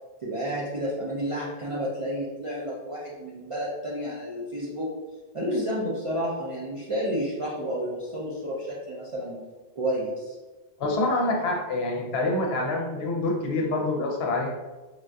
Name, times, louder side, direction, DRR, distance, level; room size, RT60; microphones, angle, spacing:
voice 1, 0.2-4.9 5.3-9.4 9.8-10.4, equal, 50° right, -6 dB, 0.4 m, -30 dB
voice 2, 10.8-14.5, left 2 dB, 70° left, 1 dB, 0.8 m, -26 dB
3.5 x 2.5 x 2.2 m, 1.2 s
omnidirectional pair, 1.1 m